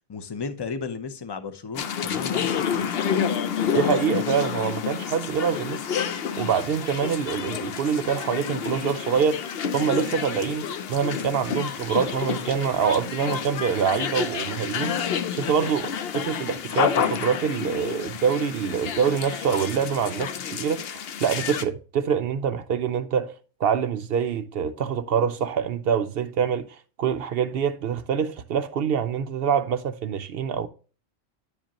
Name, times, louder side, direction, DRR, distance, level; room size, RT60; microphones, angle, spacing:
voice 1, 0.1-2.9, left 5 dB, 35° left, 0.4 m, -34 dB
sound 1, 1.7-21.6, left 8 dB, 55° left, 0.7 m, -29 dB
voice 2, 3.7-5.8 6.4-9.5 9.7-15.0 15.3-20.8 21.2-23.3 23.6-26.7 27.0-30.7, right 7 dB, 65° right, 0.6 m, -25 dB
10.0 x 5.1 x 2.9 m
omnidirectional pair, 1.4 m